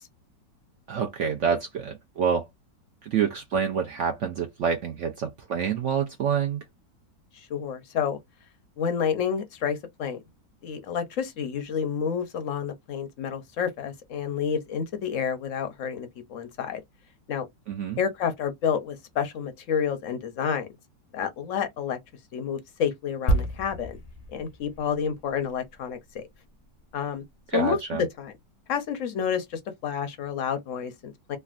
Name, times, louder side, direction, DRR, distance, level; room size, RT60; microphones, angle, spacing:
voice 1, 0.9-2.5 3.0-6.6 17.7-18.0 27.5-28.0, right 7 dB, 75° right, 0.6 m, -27 dB
voice 2, 7.3-8.2 8.8-10.2 10.6-16.8 17.3-17.4 18.0-20.7 21.1-22.0 22.3-24.0 24.3-26.2 26.9-27.2 27.5-27.8 28.2-28.3 28.7-31.4, left 7 dB, 65° left, 0.7 m, -29 dB
sound 1, 23.3-26.9 27.2-27.4, right 1 dB, 90° left, 0.3 m, -31 dB
3.3 x 2.4 x 2.4 m
omnidirectional pair, 1.9 m